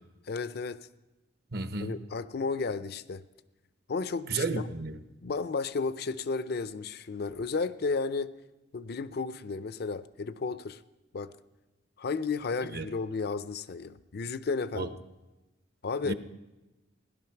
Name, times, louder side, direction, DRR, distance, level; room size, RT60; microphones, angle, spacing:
voice 1, 0.3-0.8 1.8-3.2 3.9-4.7 5.2-8.3 8.7-10.8 11.1-11.3 12.0-15.0 15.8-16.1, left 4 dB, 60° left, 14 dB, 0.5 m, -33 dB
voice 2, 1.5-1.9 4.3-5.0 12.7-12.9 14.8-14.9 16.0-16.1, right 3 dB, 60° right, 9 dB, 0.9 m, -32 dB
17.5 x 11.0 x 5.8 m, 1.0 s
head